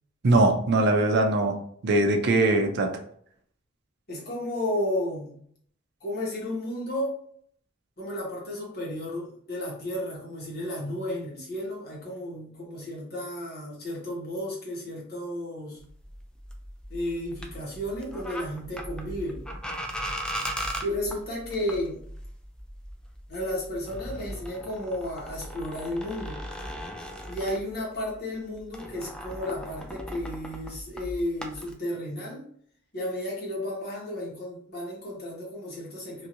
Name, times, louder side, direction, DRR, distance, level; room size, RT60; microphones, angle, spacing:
voice 1, 0.2-1.5 1.8-2.9, right 2 dB, 60° right, 4 dB, 0.5 m, -21 dB
voice 2, 4.1-5.4 6.0-7.2 8.0-15.8 16.9-19.4 20.8-22.0 23.3-26.4 27.3-32.5 32.9-36.3, left 1 dB, 55° left, -4 dB, 1.2 m, -33 dB
sound 1, 15.8-28.1 28.4-31.7, equal, 5° left, 0.3 m, -38 dB
3.0 x 2.6 x 2.6 m, 0.62 s
head